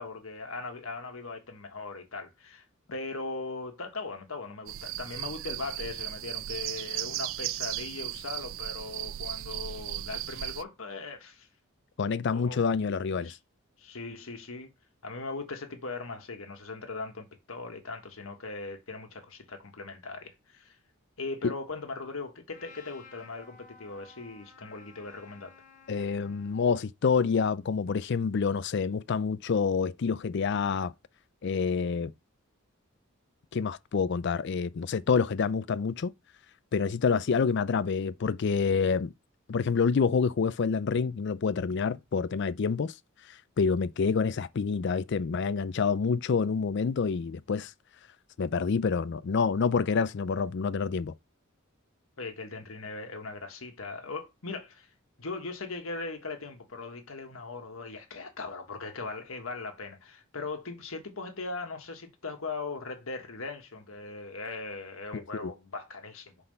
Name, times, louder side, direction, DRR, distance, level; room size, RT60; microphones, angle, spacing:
voice 1, 0.0-2.6 2.9-11.5 12.3-12.6 13.2-13.4 13.8-14.7 15.0-20.8 21.2-25.5 52.2-54.9 55.2-66.3, left 3 dB, 80° left, 1.5 m, -39 dB
sound 1, 4.7-10.6, right 14 dB, 65° right, 0.3 m, -36 dB
voice 2, 12.0-13.3 21.4-21.5 25.9-30.9 31.4-32.1 33.5-36.1 36.7-39.1 39.5-42.9 43.6-47.7 48.4-51.1 65.1-65.5, left 5 dB, 55° left, 0.4 m, -27 dB
Trumpet, 22.5-26.8, left 4 dB, 40° left, 1.3 m, -54 dB
5.7 x 4.2 x 5.4 m
head